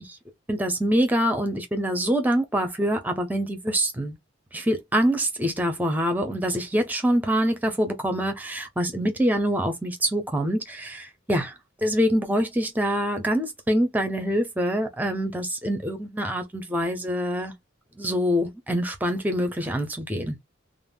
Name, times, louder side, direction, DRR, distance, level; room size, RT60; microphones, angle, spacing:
voice 1, 0.5-4.2 4.5-11.0 11.3-11.5 11.8-17.5 18.0-20.3, equal, 10° right, 0.5 m, -25 dB
2.4 x 2.0 x 3.4 m
head